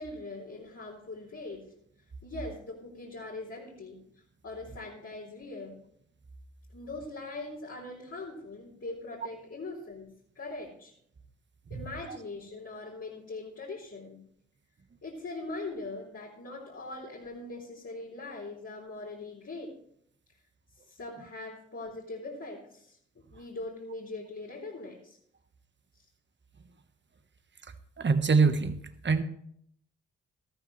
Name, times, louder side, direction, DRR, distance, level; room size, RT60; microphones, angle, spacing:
voice 1, 0.0-1.7 2.2-4.0 4.4-5.8 6.7-10.1 10.3-10.9 11.7-14.2 15.0-19.8 20.9-25.2, left 2 dB, 50° left, -4 dB, 3.8 m, -41 dB
voice 2, 28.0-29.2, right 4 dB, 35° right, 9 dB, 1.3 m, -25 dB
13.5 x 13.5 x 3.2 m, 0.68 s
supercardioid pair, 45°, 31 cm